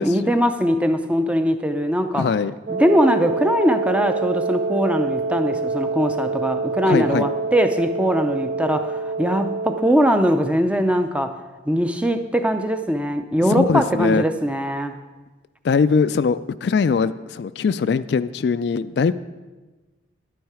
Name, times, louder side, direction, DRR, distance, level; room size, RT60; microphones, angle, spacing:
voice 1, 0.0-2.3 2.7-11.3 11.7-15.0, equal, 5° right, 7 dB, 0.5 m, -21 dB
voice 2, 2.1-2.6 6.8-7.3 13.4-14.2 15.6-19.1, left 5 dB, 60° left, 13 dB, 0.3 m, -21 dB
Wind instrument woodwind instrument, 2.7-10.5, right 4 dB, 60° right, 0.5 m, -26 dB
10.5 x 9.3 x 4.8 m, 1.2 s
head